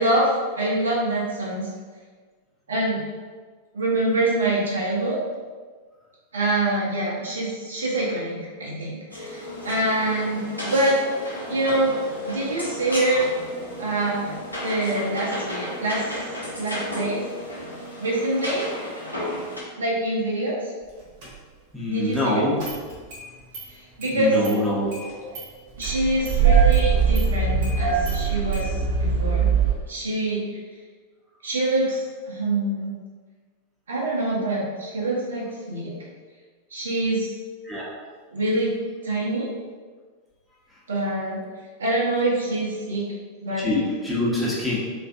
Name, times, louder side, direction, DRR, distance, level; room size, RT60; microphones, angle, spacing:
voice 1, 0.0-1.7 2.7-3.0 3.7-5.2 6.3-11.0 11.5-11.9 12.2-13.3 13.8-16.2 16.6-17.2 18.0-18.7 19.8-20.6 21.9-22.5 24.0-24.3 25.8-29.5 29.9-30.4 31.4-32.0 32.3-33.0 33.9-35.9 36.7-37.4 38.3-38.7 39.0-39.5 40.9-41.4 41.8-43.0 43.4-43.9, right 1 dB, 70° right, -5 dB, 0.7 m, -25 dB
sound 1, 9.1-19.6, left 1 dB, 90° left, 0.7 m, -33 dB
Engine starting, 21.2-21.3 22.6-23.2 23.5-23.6 24.0-24.1 24.4-24.5 24.9-25.4 25.8-29.7, right 6 dB, 45° right, 0.9 m, -21 dB
voice 2, 21.7-22.6 24.1-24.9 37.6-37.9 43.6-44.8, left 2 dB, ahead, -7 dB, 0.8 m, -24 dB
3.2 x 2.5 x 2.4 m, 1.5 s
figure-of-eight pair, 90°, 0 cm